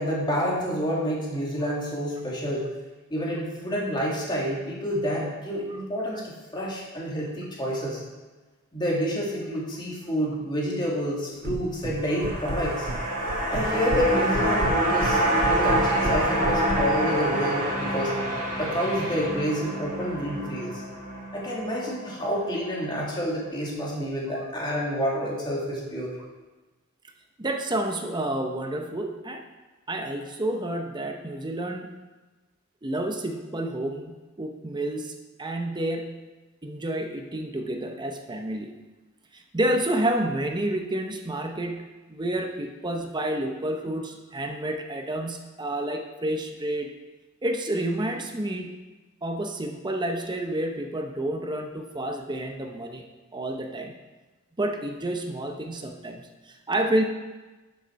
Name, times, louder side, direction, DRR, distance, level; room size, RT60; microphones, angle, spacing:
voice 1, 0.0-2.7 3.1-8.0 8.7-12.9 13.5-15.2 15.5-18.1 18.6-20.8 21.3-26.2, equal, 20° left, -4 dB, 2.6 m, -28 dB
sound 1, 11.4-12.0 12.2-13.0 13.3-14.1 14.3-16.8, right 1 dB, 75° right, 1.4 m, -30 dB
sound 2, 12.0-22.4 22.7-22.8, right 1 dB, 45° right, 2.8 m, -27 dB
voice 2, 27.4-29.4 29.9-31.9 32.8-36.2 36.6-38.7 39.3-46.9 47.4-48.8 49.2-53.1 53.3-53.9 54.6-57.0, right 1 dB, 20° right, 4 dB, 0.8 m, -29 dB
11.5 x 6.7 x 4.7 m, 1.2 s
head